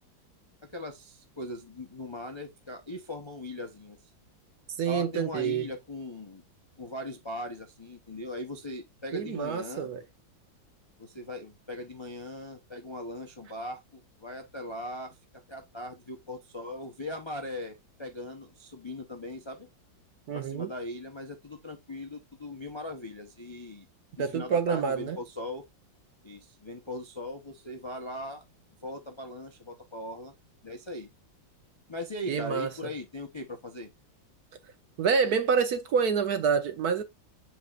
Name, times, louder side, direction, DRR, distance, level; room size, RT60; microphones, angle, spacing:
voice 1, 0.6-4.0 4.9-6.5 6.8-9.9 11.0-15.2 15.5-19.7 20.3-23.9 24.3-25.6 26.2-28.4 28.8-30.3 30.6-31.1 31.9-33.9, left 1 dB, 40° left, 0.4 m, -39 dB
voice 2, 4.8-5.6 9.1-10.0 20.3-20.7 24.2-25.2 32.3-32.7 35.0-37.0, right 6 dB, 60° right, 1.2 m, -27 dB
7.4 x 6.0 x 2.4 m
omnidirectional pair, 2.1 m